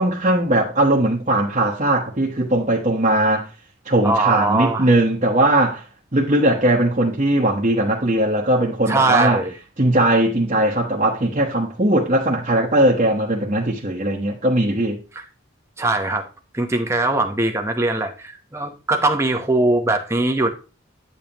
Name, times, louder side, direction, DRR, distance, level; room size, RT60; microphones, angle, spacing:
voice 1, 0.0-3.5 3.9-5.8 6.1-9.4 9.8-15.0, right 1 dB, 35° right, 1.1 m, -19 dB
voice 2, 4.0-4.9 8.9-9.5 15.1-15.2 15.8-16.3 16.5-20.5, right 2 dB, 15° right, 0.9 m, -21 dB
9.4 x 7.1 x 2.9 m
head